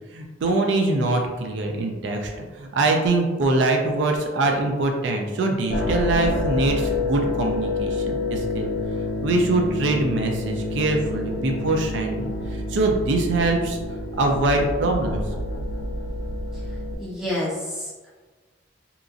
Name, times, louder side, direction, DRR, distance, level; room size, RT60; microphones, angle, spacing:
voice 1, 0.1-8.7 9.2-13.8 14.2-15.2, right 2 dB, 80° right, 3 dB, 0.4 m, -23 dB
sound 1, 5.7-16.9, left 2 dB, 90° left, 0.3 m, -28 dB
voice 2, 17.0-18.1, left 1 dB, 5° right, -9 dB, 0.8 m, -29 dB
2.8 x 2.4 x 2.4 m, 1.3 s
head